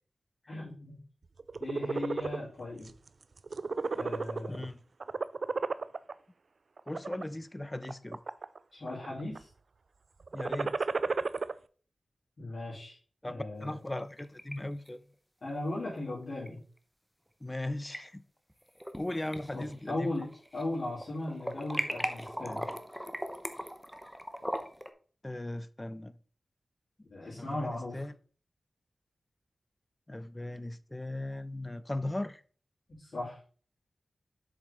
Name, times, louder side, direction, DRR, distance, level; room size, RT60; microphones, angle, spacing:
voice 1, 0.5-1.0 1.6-2.9 3.9-4.6 8.7-9.5 12.4-13.0 13.3-13.8 15.4-16.6 19.5-22.7 27.1-28.1 32.9-33.4, left 2 dB, 65° left, 2.7 m, -37 dB
sound 1, 1.4-2.4 2.9-3.1 3.4-4.7 5.0-6.1 6.8-7.2 7.8-8.6 8.9-9.4 10.2-11.5, right 4 dB, 65° right, 0.3 m, -33 dB
voice 2, 4.5-4.8 6.9-8.2 10.3-10.8 13.2-15.0 17.4-18.2 18.9-20.1 25.2-26.2 27.3-28.1 30.1-32.4, left 1 dB, 20° left, 0.4 m, -38 dB
sound 2, 13.8-14.6 14.9-15.0 16.5-16.6 17.6-18.0 18.5-19.0 19.3-20.7 21.0-24.9, equal, ahead, 0.8 m, -38 dB
7.2 x 5.0 x 3.4 m
cardioid pair, 55°, 0 cm